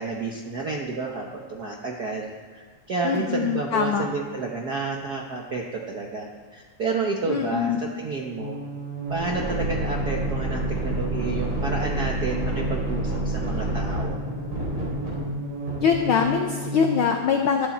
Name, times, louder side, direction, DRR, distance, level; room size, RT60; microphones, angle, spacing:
voice 1, 0.0-2.3 2.5-8.6 9.1-14.2, right 4 dB, 65° right, 0 dB, 0.9 m, -30 dB
voice 2, 3.0-4.1 7.3-7.8 15.8-17.7, left 7 dB, 85° left, 4 dB, 1.1 m, -23 dB
sound 1, 8.3-16.9, right 1 dB, 45° right, 4.6 m, -28 dB
24.0 x 8.4 x 4.3 m, 1.5 s
omnidirectional pair, 3.4 m